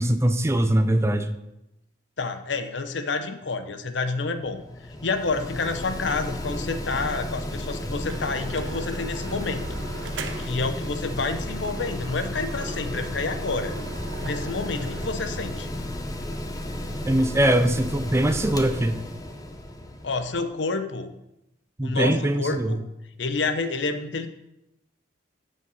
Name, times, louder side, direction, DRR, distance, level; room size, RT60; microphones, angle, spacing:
voice 1, 0.0-1.3 17.1-19.0 21.8-22.8, right 1 dB, 15° right, 9 dB, 0.5 m, -22 dB
voice 2, 2.2-9.8 10.4-13.8 14.2-15.7 20.0-21.1 21.8-22.8 23.2-24.3, left 3 dB, 70° left, 9 dB, 0.8 m, -29 dB
Mechanical fan, 4.2-20.5, left 1 dB, 20° left, 0.8 m, -33 dB
sound 1, 7.6-7.7 8.1-10.7 11.0-11.2 11.5-15.1, right 4 dB, 75° right, 0.8 m, -41 dB
7.7 x 5.7 x 6.3 m, 0.88 s
head